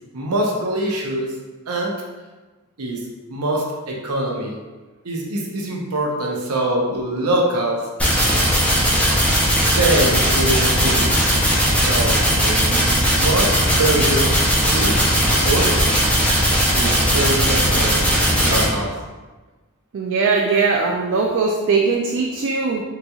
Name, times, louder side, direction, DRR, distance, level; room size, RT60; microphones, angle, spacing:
voice 1, 0.1-1.3 1.7-1.9 2.8-3.0 3.3-4.6 5.0-7.9 9.4-11.0 11.7-14.3 14.7-15.0 15.4-15.8 16.7-18.0 18.4-18.9, right 1 dB, 90° right, -1 dB, 0.7 m, -23 dB
sound 1, 8.0-18.6, equal, 5° left, 0.6 m, -18 dB
voice 2, 19.9-22.8, right 4 dB, 55° right, -1 dB, 0.3 m, -20 dB
3.9 x 2.9 x 2.3 m, 1.2 s
head